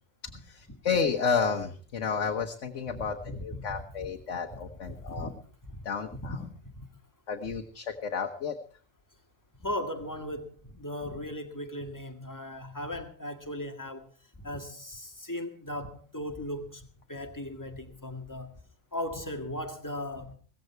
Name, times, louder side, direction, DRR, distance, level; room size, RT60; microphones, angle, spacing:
voice 1, 0.5-5.3 5.8-6.4 7.3-8.6, left 6 dB, 75° left, 1.5 m, -31 dB
voice 2, 2.9-4.1 4.5-5.3 5.7-5.8 6.2-6.7 9.6-14.1 14.4-18.5 18.9-20.3, left 1 dB, 15° left, 1.9 m, -38 dB
17.0 x 15.0 x 4.6 m
omnidirectional pair, 1.3 m